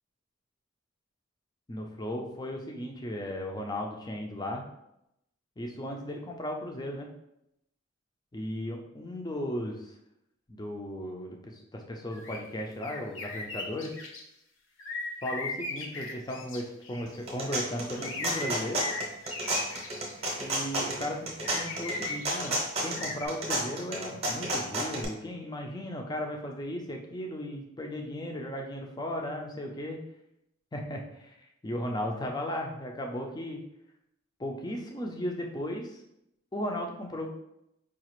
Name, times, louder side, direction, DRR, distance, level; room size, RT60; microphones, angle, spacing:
voice 1, 1.7-4.6 5.6-7.1 8.3-9.9 10.5-13.9 15.2-18.8 20.4-22.5 22.8-30.0 30.7-31.4 31.6-33.6 34.4-36.0 36.5-37.3, left 1 dB, 20° left, 2 dB, 0.4 m, -36 dB
sound 1, 12.1-12.4 12.8-14.2 14.8-17.2 17.9-20.4 21.4-22.6 23.0-23.3, left 3 dB, 65° left, 0.6 m, -38 dB
sound 2, 17.1-25.0, right 1 dB, 30° right, 0.8 m, -32 dB
4.8 x 2.4 x 3.0 m, 0.81 s
head